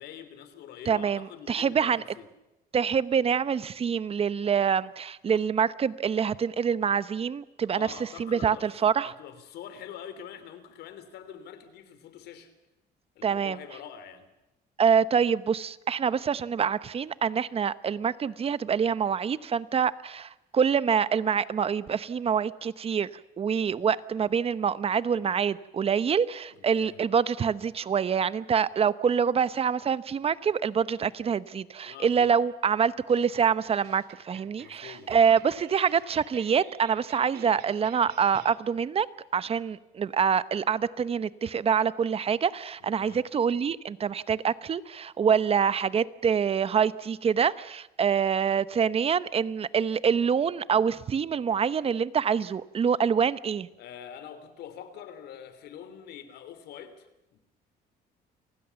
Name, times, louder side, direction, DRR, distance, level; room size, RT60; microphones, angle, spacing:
voice 1, 0.0-2.3 7.7-12.5 13.1-14.3 23.6-23.9 26.5-27.0 31.8-32.4 34.6-35.3 42.8-43.2 53.8-57.4, left 9 dB, 75° left, 3.1 m, -45 dB
voice 2, 0.9-2.0 2.7-7.9 8.2-9.1 13.2-13.6 14.8-23.1 23.4-39.1 39.3-53.7, right 7 dB, 35° right, 0.9 m, -26 dB
sound 1, 32.8-38.6, right 10 dB, 75° right, 2.1 m, -51 dB
28.5 x 19.5 x 7.0 m
cardioid pair, 110°, 17 cm